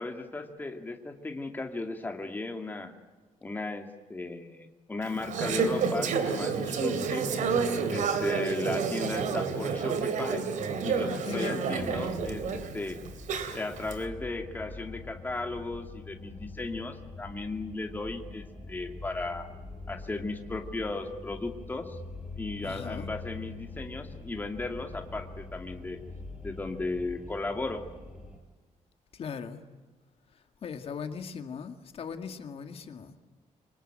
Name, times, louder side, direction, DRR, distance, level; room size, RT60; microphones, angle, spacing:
voice 1, 0.0-2.9 3.4-7.2 7.9-10.5 10.8-13.0 13.5-19.5 19.9-22.0 22.4-26.0 26.4-27.9, left 2 dB, 15° left, 4 dB, 2.4 m, -36 dB
Conversation / Chatter, 5.0-13.9, right 5 dB, 75° right, 3.1 m, -30 dB
voice 2, 11.1-11.7 22.6-23.1 29.1-29.6 30.6-33.1, left 6 dB, 50° left, 7 dB, 2.0 m, -38 dB
sound 1, 11.8-28.4, left 3 dB, 5° right, 4.9 m, -44 dB
27.0 x 24.5 x 9.0 m, 1.3 s
wide cardioid pair, 170°, 13 cm